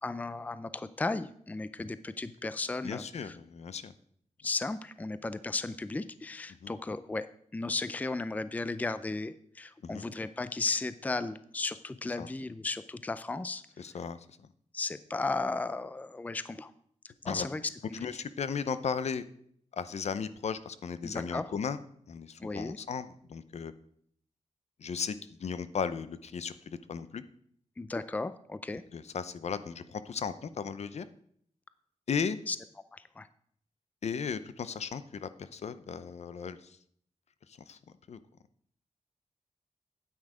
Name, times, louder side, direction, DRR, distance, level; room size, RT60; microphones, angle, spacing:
voice 1, 0.0-3.4 4.4-13.6 14.7-16.7 17.2-17.6 21.0-21.5 22.4-22.8 27.8-28.8 32.5-32.6 32.9-33.3, left 3 dB, 10° left, 14 dB, 0.4 m, -35 dB
voice 2, 2.8-3.9 6.6-6.7 9.9-10.0 12.2-12.3 13.8-14.2 17.2-17.5 17.9-19.2 19.7-21.8 22.1-23.7 24.8-27.2 28.9-31.1 32.1-32.4 34.0-36.6 37.7-37.8 38.1-38.2, left 6 dB, 60° left, 13 dB, 0.6 m, -35 dB
9.5 x 8.8 x 4.9 m, 0.64 s
wide cardioid pair, 125°, 12 cm